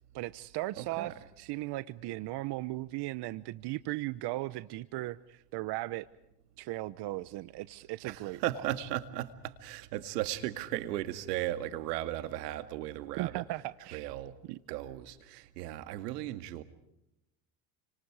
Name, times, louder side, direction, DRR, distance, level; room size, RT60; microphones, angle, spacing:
voice 1, 0.1-6.1 6.6-8.4 13.2-14.1 14.5-14.6, right 18 dB, 55° right, 1.0 m, -37 dB
voice 2, 0.8-1.1 8.0-13.4 13.9-14.3 14.7-16.6, right 14 dB, 85° right, 2.1 m, -36 dB
29.5 x 26.0 x 4.9 m
supercardioid pair, 95°, 47 cm